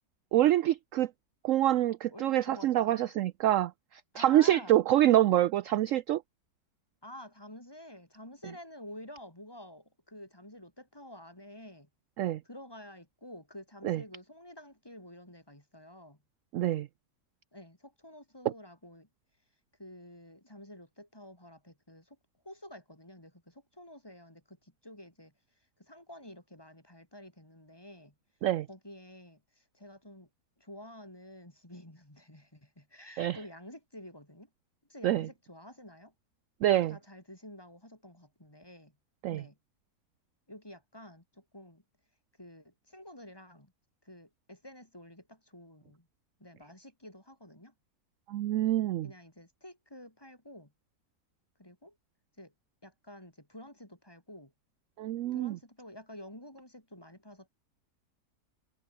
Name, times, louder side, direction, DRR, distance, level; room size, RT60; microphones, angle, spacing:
voice 1, 0.3-1.1 1.4-6.2 12.2-12.4 13.8-14.0 16.5-16.9 18.4-18.5 28.4-28.7 33.2-33.4 35.0-35.3 36.6-37.0 39.2-39.4 48.3-49.1 55.0-55.6, right 13 dB, 65° right, 0.9 m, -26 dB
voice 2, 2.1-3.1 4.1-4.8 7.0-11.9 12.4-16.2 17.5-19.1 19.8-22.2 22.4-25.3 25.8-28.1 28.7-30.3 30.6-34.5 34.9-36.1 36.9-38.9 39.3-39.6 40.5-41.8 42.4-43.7 44.0-46.1 46.4-47.7 49.0-50.7 51.6-52.0 52.4-52.5 52.8-54.5 55.3-57.5, left 1 dB, 15° left, 4.0 m, -50 dB
omnidirectional pair, 1.7 m